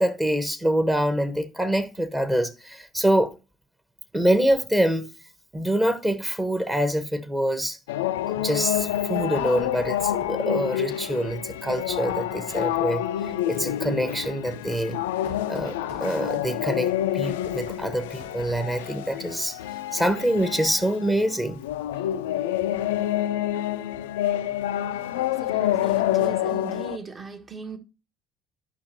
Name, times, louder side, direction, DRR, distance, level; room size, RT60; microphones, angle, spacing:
voice 1, 0.0-3.3 4.1-5.1 5.5-7.8 8.3-13.0 13.5-15.0 15.5-19.6 19.9-21.6, right 1 dB, 10° right, 1.3 m, -25 dB
sound 1, 7.9-27.0, left 12 dB, 70° left, 0.4 m, -28 dB
Knock, 8.7-10.5 11.7-12.9 13.6-16.5 17.0-18.8, left 1 dB, 90° right, 3.6 m, -46 dB
voice 2, 25.3-27.8, right 4 dB, 35° right, 1.8 m, -39 dB
11.5 x 6.0 x 2.9 m
figure-of-eight pair, 55°, 0 cm